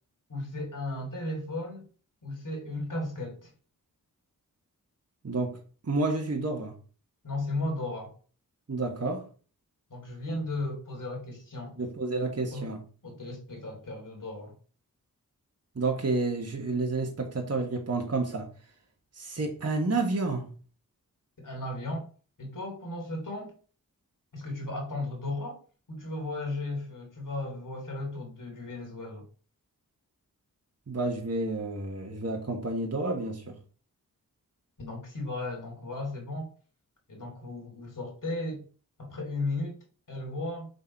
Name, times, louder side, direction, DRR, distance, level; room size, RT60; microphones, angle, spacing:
voice 1, 0.3-1.9 2.2-3.5 7.2-8.1 9.9-11.8 12.5-12.7 13.0-14.6 21.4-22.1 22.4-23.6 24.3-25.6 25.9-29.2 34.8-36.5 37.1-38.6 39.0-39.8 40.1-40.7, left 2 dB, 60° left, 3.2 m, -35 dB
voice 2, 5.2-5.6 5.8-6.7 8.7-9.2 11.8-12.8 15.7-18.5 19.1-20.5 30.9-33.6, right 3 dB, 45° right, 1.6 m, -30 dB
5.4 x 3.7 x 5.5 m
cardioid pair, 45°, 36 cm